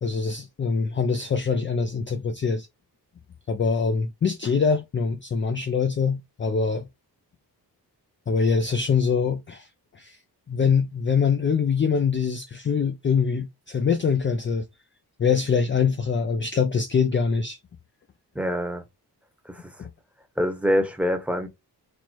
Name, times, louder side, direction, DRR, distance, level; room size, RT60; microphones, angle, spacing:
voice 1, 0.0-2.7 3.5-6.9 8.3-9.7 9.9-10.2 10.5-14.7 15.2-17.6 19.8-19.9, left 5 dB, 30° left, 0.4 m, -24 dB
voice 2, 18.3-18.8 19.5-19.7 20.4-21.5, equal, 5° right, 0.8 m, -25 dB
4.3 x 2.0 x 4.4 m
wide cardioid pair, 120°, 40 cm